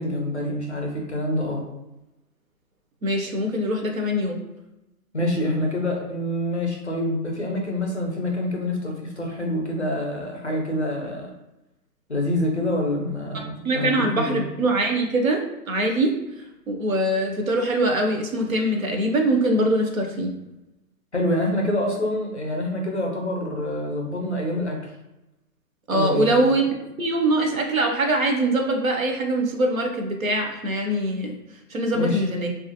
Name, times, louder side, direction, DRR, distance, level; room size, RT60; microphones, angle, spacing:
voice 1, 0.0-1.6 5.1-11.3 12.1-14.4 21.1-24.8 25.9-26.5 31.9-32.3, left 1 dB, 45° left, 1 dB, 0.5 m, -26 dB
voice 2, 3.0-4.4 13.3-15.4 15.7-16.1 16.7-20.3 25.9-26.6 27.0-31.3 31.7-32.5, right 1 dB, 55° right, 3 dB, 0.6 m, -23 dB
2.8 x 2.4 x 2.7 m, 0.98 s
hypercardioid pair, 175°, 50 cm